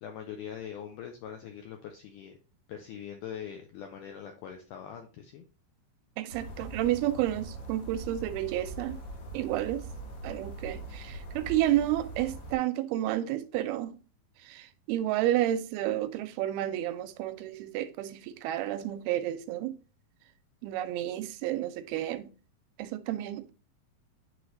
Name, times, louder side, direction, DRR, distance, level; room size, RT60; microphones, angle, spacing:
voice 1, 0.0-2.4 2.7-5.4, left 8 dB, 85° left, 1.8 m, -42 dB
voice 2, 6.2-9.0 9.3-9.8 10.2-14.0 14.4-19.8 20.6-22.3 22.8-23.5, right 13 dB, 80° right, 2.4 m, -31 dB
sound 1, 6.3-12.5, right 2 dB, 65° left, 1.4 m, -42 dB
9.2 x 3.3 x 4.0 m
omnidirectional pair, 4.5 m